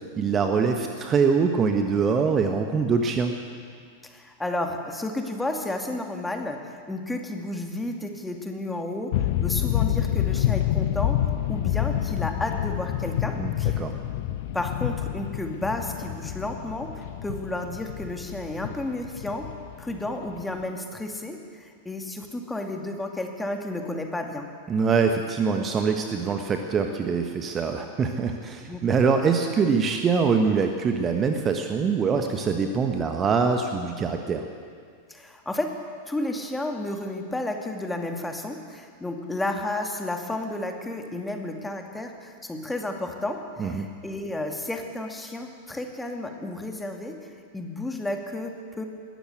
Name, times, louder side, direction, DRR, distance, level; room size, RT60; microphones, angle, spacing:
voice 1, 0.2-3.3 13.4-13.9 24.7-34.4 43.6-43.9, right 5 dB, 25° right, 5 dB, 1.4 m, -24 dB
voice 2, 4.0-9.1 9.4-13.8 14.5-19.5 19.8-24.5 28.6-28.9 35.1-35.7 36.1-47.2 47.5-48.8, left 2 dB, 5° left, 3 dB, 2.4 m, -32 dB
sound 1, 9.1-20.6, left 12 dB, 50° left, 1.0 m, -28 dB
20.5 x 16.0 x 8.1 m, 2.1 s
figure-of-eight pair, 90°, 0 cm